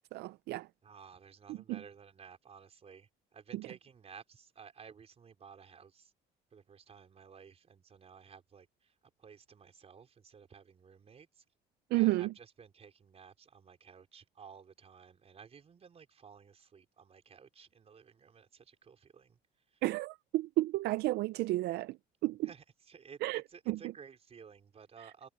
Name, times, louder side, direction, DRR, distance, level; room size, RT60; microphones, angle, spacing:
voice 1, 0.1-0.7 1.5-1.8 11.9-12.3 19.8-22.0 22.2-22.4 23.2-23.4 23.7-23.8, right 18 dB, 75° right, 0.5 m, -31 dB
voice 2, 0.8-6.1 6.5-11.4 11.9-19.4 19.7-19.8 22.4-25.3, right 6 dB, 35° right, 4.5 m, -55 dB
cardioid pair, 110°, 17 cm